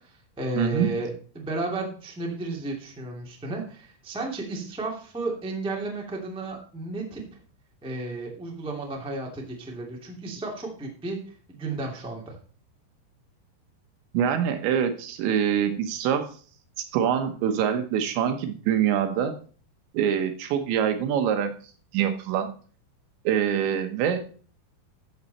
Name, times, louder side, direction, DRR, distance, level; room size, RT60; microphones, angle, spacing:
voice 1, 0.0-7.2 7.8-11.2 11.5-12.4, right 2 dB, 5° right, 0 dB, 0.5 m, -33 dB
voice 2, 0.6-0.9 14.1-16.3 16.9-19.3 19.9-21.5 21.9-22.5 23.2-24.2, right 8 dB, 75° right, 8 dB, 3.1 m, -24 dB
13.5 x 7.5 x 4.2 m, 0.42 s
omnidirectional pair, 5.6 m